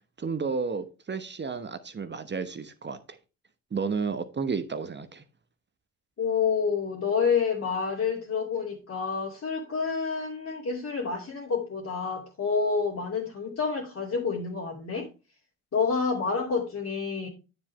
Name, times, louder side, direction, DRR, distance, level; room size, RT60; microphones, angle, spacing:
voice 1, 0.2-3.0 3.7-5.2, right 5 dB, 25° right, 1.0 m, -32 dB
voice 2, 6.2-15.1 15.7-17.3, left 5 dB, 40° left, 2.6 m, -28 dB
9.6 x 7.3 x 3.2 m
hypercardioid pair, 55°, 39 cm